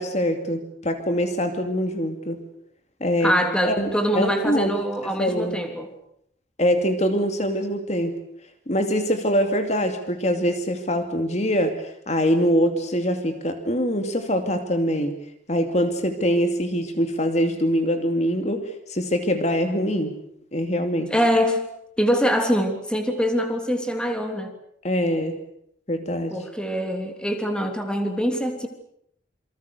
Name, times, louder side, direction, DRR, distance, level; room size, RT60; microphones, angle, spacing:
voice 1, 0.0-2.4 3.0-3.3 3.6-4.7 5.0-5.6 6.6-8.2 8.7-15.1 15.5-18.6 18.9-20.1 20.5-21.1 24.8-25.4 25.9-26.4, equal, 40° left, 6 dB, 2.6 m, -23 dB
voice 2, 3.2-5.9 21.1-21.6 22.0-24.5 26.3-28.7, equal, 5° left, 5 dB, 3.1 m, -24 dB
28.5 x 25.0 x 6.8 m, 0.70 s
head